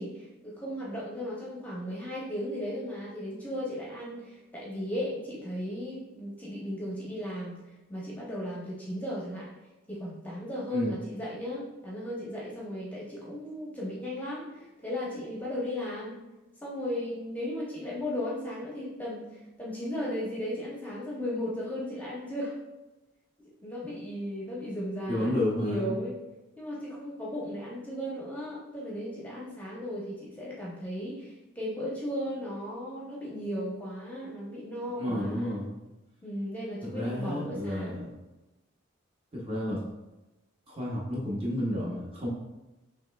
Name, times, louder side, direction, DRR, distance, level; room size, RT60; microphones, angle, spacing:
voice 1, 0.0-9.5 9.9-16.2 16.6-22.5 23.6-26.2 26.6-35.6 36.2-38.0, left 1 dB, 10° left, -6 dB, 0.8 m, -36 dB
voice 2, 25.1-25.9 35.0-35.7 36.8-38.1 39.3-39.8 40.7-42.3, left 1 dB, 25° right, -4 dB, 0.8 m, -31 dB
5.4 x 3.2 x 2.3 m, 1.1 s
head